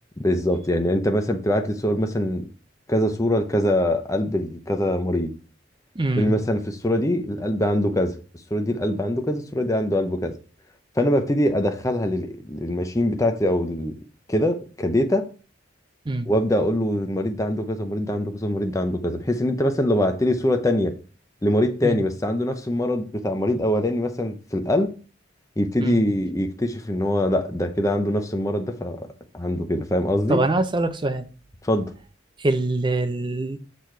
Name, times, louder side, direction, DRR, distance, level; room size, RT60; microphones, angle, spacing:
voice 1, 0.2-2.5 2.9-5.3 6.2-8.2 8.5-10.3 11.0-14.0 14.3-15.3 16.3-20.9 21.4-24.9 25.6-29.1 29.3-30.4 31.6-31.9, left 1 dB, 15° left, 0.6 m, -23 dB
voice 2, 6.0-6.4 16.1-16.3 21.8-22.0 25.8-26.0 30.3-31.3 32.4-33.6, right 2 dB, 25° right, 0.5 m, -24 dB
6.6 x 4.1 x 4.5 m
head